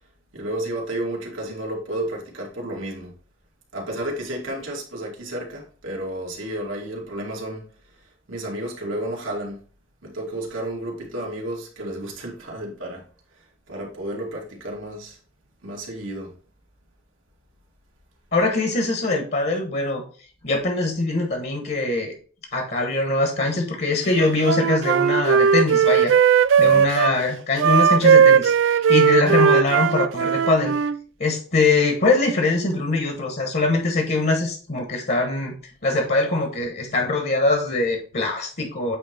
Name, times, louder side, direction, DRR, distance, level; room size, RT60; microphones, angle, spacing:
voice 1, 0.3-3.1 3.7-7.7 8.3-9.6 10.0-13.1 13.3-15.2 15.6-16.3 26.6-26.9, right 1 dB, 90° right, 2.3 m, -32 dB
voice 2, 18.3-20.0 20.4-22.1 22.5-26.1 26.6-30.7 31.2-35.5 35.8-39.0, left 3 dB, 50° left, 1.3 m, -22 dB
Wind instrument woodwind instrument, 24.2-27.1 27.6-31.0, right 7 dB, 70° right, 0.3 m, -17 dB
8.5 x 3.2 x 4.4 m
head